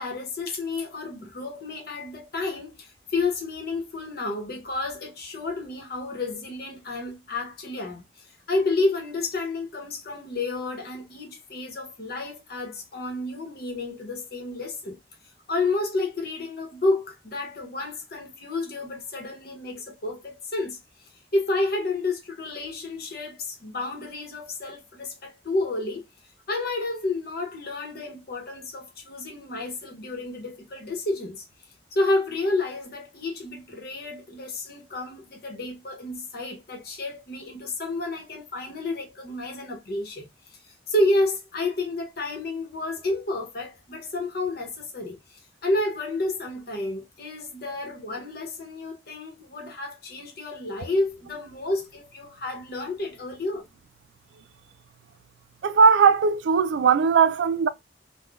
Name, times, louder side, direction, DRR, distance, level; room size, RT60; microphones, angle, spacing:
voice 1, 0.0-15.0 15.5-20.8 21.3-26.0 26.5-31.4 31.9-40.3 40.6-53.6, left 2 dB, 60° left, 0.9 m, -30 dB
voice 2, 55.6-57.7, right 5 dB, 90° right, 0.3 m, -18 dB
3.6 x 2.2 x 2.3 m
head